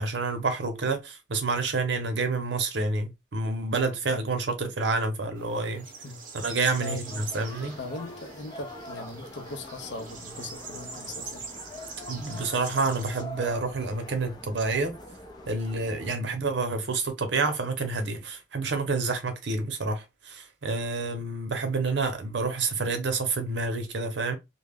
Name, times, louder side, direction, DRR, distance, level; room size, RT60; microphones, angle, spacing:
voice 1, 0.0-5.9 6.3-7.8 12.1-15.0 15.5-24.3, right 3 dB, 85° right, 0.7 m, -28 dB
sound 1, 5.4-13.2, right 5 dB, 50° right, 0.7 m, -43 dB
sound 2, 7.0-16.2, left 1 dB, 25° left, 0.5 m, -44 dB
voice 2, 7.8-11.5 16.1-16.4, left 3 dB, 80° left, 0.6 m, -39 dB
2.2 x 2.1 x 3.4 m
head